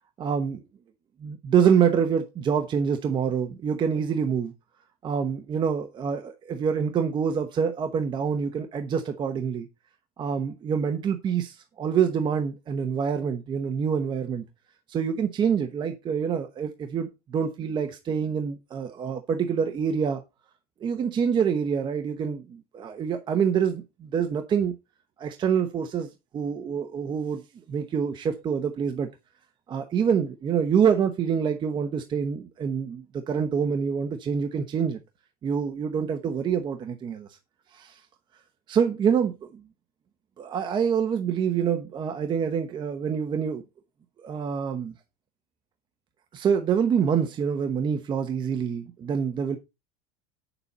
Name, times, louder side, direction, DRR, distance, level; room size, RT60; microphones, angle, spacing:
voice 1, 0.2-0.6 1.2-4.5 5.0-9.7 10.2-14.4 14.9-20.2 20.8-24.7 25.2-26.1 26.3-27.4 27.7-29.1 29.7-35.0 35.4-37.3 37.7-38.0 38.7-39.6 40.4-43.6 44.2-44.9 46.3-49.6, right 7 dB, 25° right, 0.9 m, -26 dB
8.7 x 7.0 x 4.0 m
supercardioid pair, 150°, 20 cm